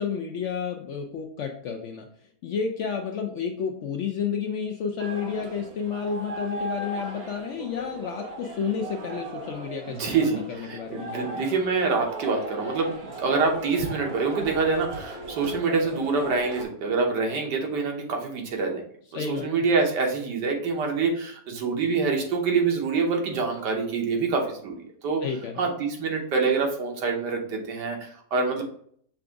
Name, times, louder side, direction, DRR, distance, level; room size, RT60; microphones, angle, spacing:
voice 1, 0.0-2.1 2.4-11.4 19.1-19.5 25.2-25.7, left 6 dB, 80° left, 3 dB, 0.6 m, -31 dB
sound 1, 5.0-16.6, right 1 dB, 45° right, 1.0 m, -38 dB
voice 2, 9.9-18.8 19.1-24.7 25.0-25.2 25.6-28.6, right 4 dB, 85° right, 2 dB, 1.6 m, -26 dB
5.7 x 2.5 x 3.4 m, 0.62 s
omnidirectional pair, 1.8 m